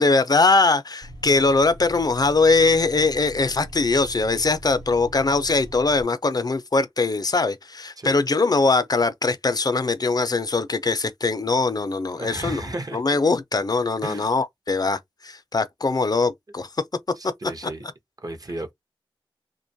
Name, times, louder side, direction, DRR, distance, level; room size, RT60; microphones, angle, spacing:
voice 1, 0.0-12.6 12.9-15.0 15.2-16.7, left 3 dB, 45° left, 0.4 m, -21 dB
sound 1, 1.0-6.0, equal, 75° right, 1.0 m, -41 dB
voice 2, 12.2-13.0 14.0-14.3 17.2-17.9 18.2-18.7, right 2 dB, 45° right, 0.6 m, -34 dB
2.5 x 2.2 x 2.6 m
wide cardioid pair, 50°, 9 cm